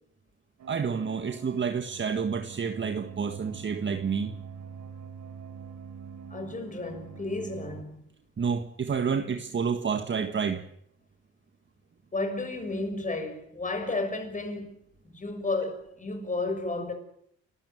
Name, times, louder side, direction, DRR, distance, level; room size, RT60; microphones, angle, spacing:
sound 1, 0.6-7.8, right 6 dB, 75° right, 4.5 m, -44 dB
voice 1, 0.7-4.3 8.4-10.6, right 6 dB, 40° right, 1.7 m, -29 dB
voice 2, 6.3-8.0 12.1-14.7 15.0-16.9, left 2 dB, 25° left, 6.5 m, -32 dB
30.0 x 13.0 x 9.2 m
cardioid pair, 90°, 30 cm